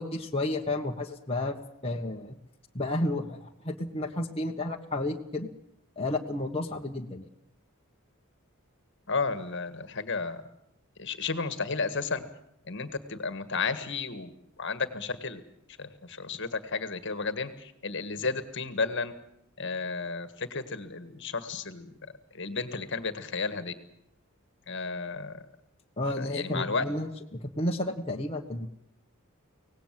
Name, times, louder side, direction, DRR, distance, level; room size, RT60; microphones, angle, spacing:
voice 1, 0.0-1.6 1.8-2.4 2.7-5.5 6.0-7.3 26.0-28.7, left 1 dB, 25° left, 1 dB, 1.5 m, -32 dB
voice 2, 9.1-10.4 11.0-12.2 12.7-14.3 14.6-15.4 15.8-19.1 19.6-21.9 22.3-23.7 24.7-25.4 26.2-26.8, left 4 dB, 55° left, 11 dB, 1.8 m, -32 dB
25.0 x 18.5 x 7.7 m, 0.79 s
head